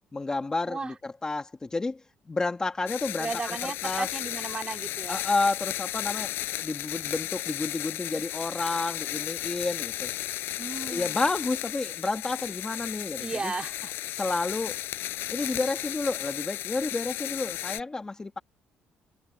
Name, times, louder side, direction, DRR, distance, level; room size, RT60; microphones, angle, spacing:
voice 1, 0.1-2.0 2.3-4.1 5.1-6.3 6.6-10.1 10.9-13.5 14.2-14.8 15.3-18.4, left 3 dB, 20° left, 1.7 m, -30 dB
sound 1, 2.9-17.8, left 15 dB, 90° left, 4.4 m, -34 dB
voice 2, 3.2-5.2 10.6-11.3 13.2-13.9, right 4 dB, 25° right, 2.4 m, -35 dB
cardioid pair, 125°, 4 cm